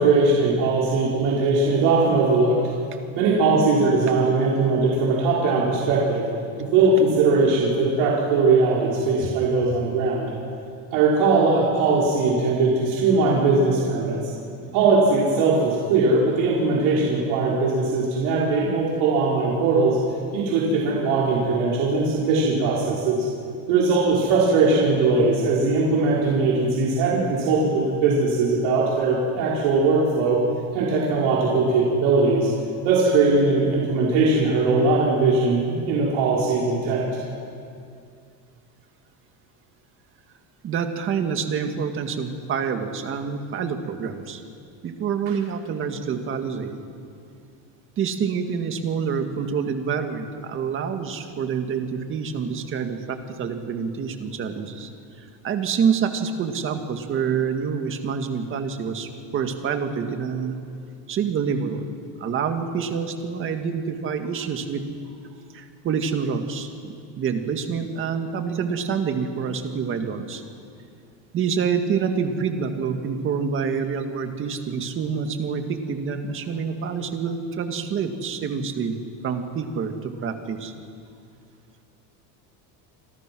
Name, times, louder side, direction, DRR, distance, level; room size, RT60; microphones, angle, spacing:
voice 1, 0.0-2.6 3.2-6.3 6.6-10.3 10.9-14.2 14.7-20.0 20.3-23.3 23.7-30.4 30.7-32.5 32.8-37.2, right 3 dB, 70° right, -5 dB, 5.2 m, -20 dB
voice 2, 40.6-44.4 44.8-46.8 48.0-54.9 55.2-60.6 61.1-64.8 65.5-70.4 71.3-79.0 79.2-80.7, right 6 dB, 30° right, 6 dB, 1.9 m, -27 dB
28.5 x 25.5 x 6.2 m, 2.4 s
cardioid pair, 170°, 41 cm